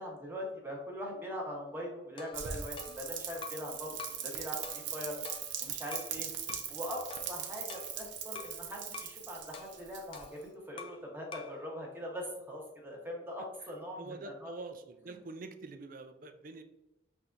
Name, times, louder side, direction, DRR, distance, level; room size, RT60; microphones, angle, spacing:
voice 1, 0.0-5.2 5.6-6.3 6.7-14.5, equal, 10° right, -1 dB, 1.1 m, -42 dB
sound 1, 2.2-3.7 4.0-4.3 4.6-6.1 6.5-6.7 7.1-8.6 8.9-9.2 9.5-11.1 11.3-11.6, left 5 dB, 30° left, 0.4 m, -48 dB
Rain, 2.3-10.4, right 8 dB, 80° right, 0.7 m, -40 dB
voice 2, 14.0-16.6, right 3 dB, 45° right, 8 dB, 0.5 m, -45 dB
5.8 x 3.4 x 2.6 m, 0.97 s
head